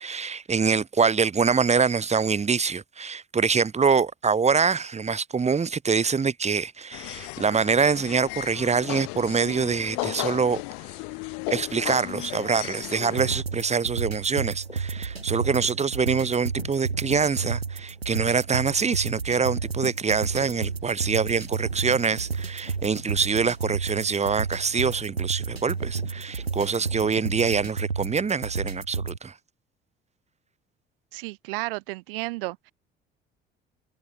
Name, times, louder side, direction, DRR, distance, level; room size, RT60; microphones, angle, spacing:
voice 1, 0.0-10.6 11.5-29.3, right 5 dB, 20° right, 1.7 m, -25 dB
sound 1, 6.9-13.4, left 31 dB, 60° left, 1.3 m, -35 dB
sound 2, 11.8-27.7, left 1 dB, 90° left, 4.1 m, -46 dB
sound 3, 13.1-29.2, right 5 dB, 85° right, 3.9 m, -32 dB
voice 2, 31.1-32.7, right 23 dB, 65° right, 6.2 m, -32 dB
figure-of-eight pair, 55°, 30 cm